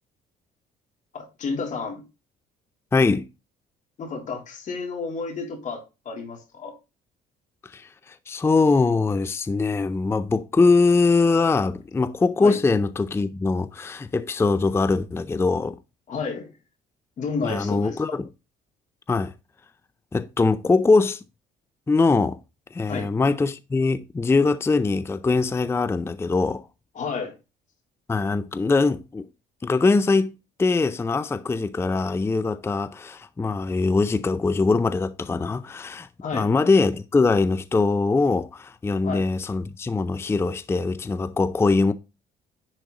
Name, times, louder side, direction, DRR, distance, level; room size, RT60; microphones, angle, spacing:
voice 1, 1.1-2.0 4.0-6.7 12.4-12.6 16.1-16.5 17.2-18.0 22.8-23.1 26.9-27.3 36.2-36.4 39.0-39.2, left 4 dB, 45° left, 3.1 m, -31 dB
voice 2, 2.9-3.3 7.6-15.8 17.4-18.3 19.1-19.3 20.1-21.2 21.9-22.4 22.7-26.6 28.1-29.3 29.6-41.9, left 3 dB, 15° left, 0.5 m, -22 dB
10.5 x 4.5 x 3.8 m
cardioid pair, 110°, 17 cm